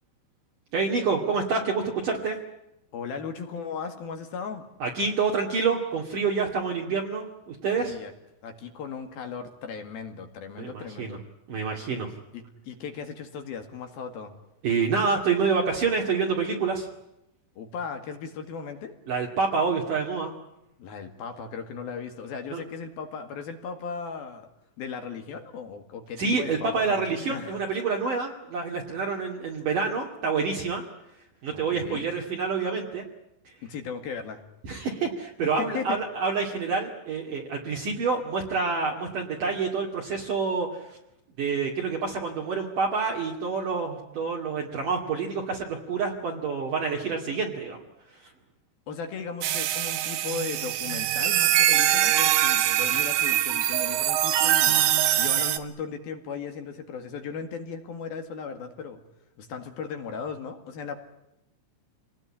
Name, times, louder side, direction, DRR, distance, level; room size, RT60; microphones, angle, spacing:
voice 1, 0.7-2.4 4.8-8.0 10.6-11.2 11.5-12.1 14.6-16.9 19.1-20.3 22.5-22.6 26.2-30.8 31.4-33.0 34.6-41.0 41.4-47.8, right 5 dB, 50° right, 0 dB, 3.4 m, -27 dB
voice 2, 2.9-4.6 7.7-8.1 8.4-11.2 12.3-14.3 17.6-18.9 20.8-24.5 24.8-27.0 27.3-27.5 31.5-32.0 33.6-34.4 35.4-36.0 48.9-54.8 55.2-59.0 59.4-61.0, left 6 dB, 60° left, 6 dB, 3.4 m, -37 dB
sound 1, 49.4-55.6, right 12 dB, 70° right, 3.2 m, -23 dB
27.5 x 19.5 x 9.9 m, 0.86 s
omnidirectional pair, 5.6 m